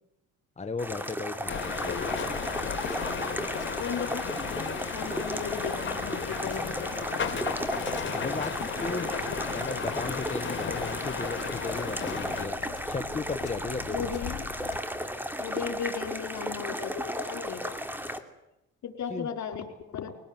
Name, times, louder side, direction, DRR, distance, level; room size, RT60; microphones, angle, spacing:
voice 1, 0.6-2.2 8.0-12.5 12.9-14.1 19.1-19.3, left 4 dB, 25° left, 8 dB, 1.3 m, -36 dB
sound 1, 0.8-18.2, equal, 5° right, 2.9 m, -35 dB
sound 2, 1.5-14.8, left 11 dB, 85° left, 2.2 m, -43 dB
sound 3, 1.5-12.5, left 6 dB, 40° left, 3.7 m, -35 dB
voice 2, 3.8-4.3 4.9-7.0 13.9-14.5 15.4-17.8 18.8-20.1, left 7 dB, 65° left, 6 dB, 4.8 m, -36 dB
23.0 x 18.0 x 9.2 m, 0.90 s
cardioid pair, 90°, 30 cm